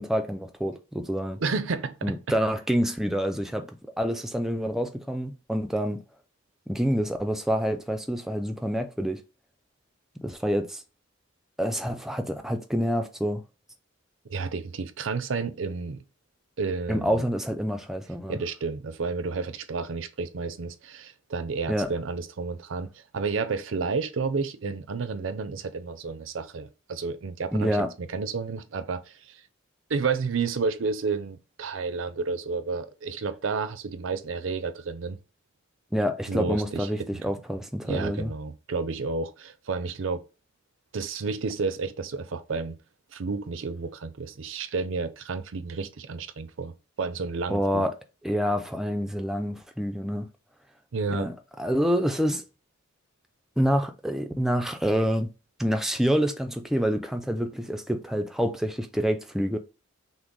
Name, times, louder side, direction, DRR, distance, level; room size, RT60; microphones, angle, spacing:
voice 1, 0.0-1.4 2.0-3.7 4.0-6.0 6.7-9.2 10.2-10.8 11.6-13.4 16.9-18.4 21.7-21.9 27.5-27.9 35.9-38.3 47.5-47.9 48.2-50.3 51.1-52.4 53.6-55.3 55.6-59.6, equal, ahead, 0.3 m, -27 dB
voice 2, 1.3-2.2 14.3-16.0 16.6-17.2 18.3-29.4 29.9-35.2 36.3-36.9 37.8-40.2 40.9-42.8 43.1-47.8 50.9-51.3, right 4 dB, 75° right, 0.5 m, -31 dB
6.0 x 2.0 x 3.8 m
head